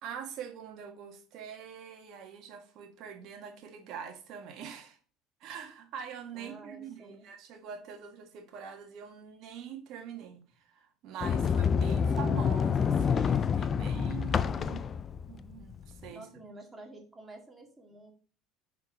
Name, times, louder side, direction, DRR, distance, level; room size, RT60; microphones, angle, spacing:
voice 1, 0.0-5.0 5.4-14.9 15.3-16.3, right 7 dB, 60° right, 1.7 m, -44 dB
voice 2, 6.3-7.3 16.1-18.1, right 2 dB, 15° right, 2.0 m, -49 dB
Sliding door, 11.2-16.1, left 6 dB, 35° left, 0.4 m, -28 dB
5.8 x 4.3 x 5.0 m
supercardioid pair, 100°, 0 cm